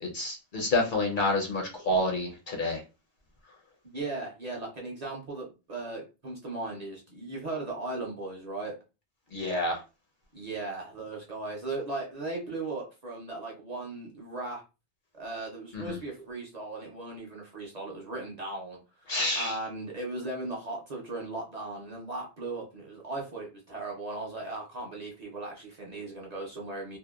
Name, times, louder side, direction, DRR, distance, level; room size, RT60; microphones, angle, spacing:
voice 1, 0.0-2.8 9.3-9.8 15.7-16.0 19.1-19.6, left 1 dB, 55° left, 1 dB, 0.6 m, -28 dB
voice 2, 3.9-8.8 10.3-14.6 15.1-27.0, right 2 dB, 45° right, -2 dB, 0.6 m, -37 dB
2.8 x 2.1 x 2.2 m, 0.30 s
omnidirectional pair, 1.1 m